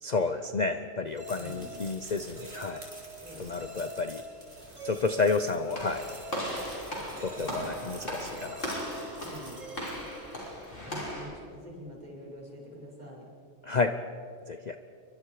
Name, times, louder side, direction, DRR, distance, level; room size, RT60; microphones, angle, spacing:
voice 1, 0.0-2.9 3.4-4.2 4.8-6.1 6.8-8.6 13.6-14.0 14.5-14.8, left 4 dB, 40° left, 8 dB, 0.8 m, -31 dB
sound 1, 1.1-10.6, right 1 dB, 50° right, 4.2 m, -50 dB
sound 2, 1.2-11.0, right 1 dB, 75° right, 2.9 m, -46 dB
voice 2, 1.4-1.9 3.2-3.5 7.3-8.2 9.2-9.6 10.8-13.3, left 1 dB, 35° right, -3 dB, 6.2 m, -46 dB
Walk footsteps / Slam, 5.7-11.3, equal, 70° left, 6.0 m, -37 dB
28.5 x 23.5 x 4.9 m, 2.4 s
omnidirectional pair, 1.3 m